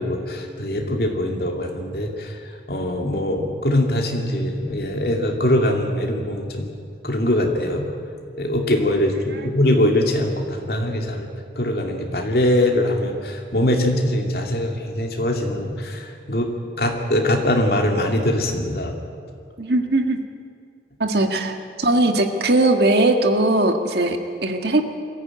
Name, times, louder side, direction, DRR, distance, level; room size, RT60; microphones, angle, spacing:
voice 1, 0.0-2.3 2.7-6.7 7.0-7.8 8.3-11.3 11.6-16.5 16.8-18.9, left 1 dB, 55° left, 2 dB, 2.6 m, -22 dB
voice 2, 19.6-20.2 21.0-24.8, right 2 dB, 65° right, 5 dB, 1.7 m, -19 dB
22.0 x 14.5 x 9.0 m, 2.3 s
head